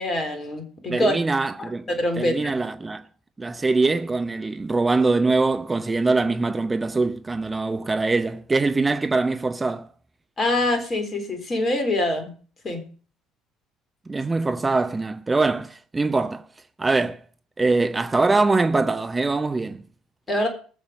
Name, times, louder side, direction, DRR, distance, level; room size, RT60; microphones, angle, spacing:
voice 1, 0.0-1.1 1.6-2.5 10.4-12.3 12.6-12.8 20.3-20.5, left 1 dB, 35° left, 3.8 m, -24 dB
voice 2, 0.9-1.8 2.2-3.0 3.4-9.9 14.1-16.5 16.8-17.2 17.6-19.8, right 3 dB, 20° right, 0.8 m, -23 dB
20.0 x 7.0 x 5.2 m
figure-of-eight pair, 55°, 0 cm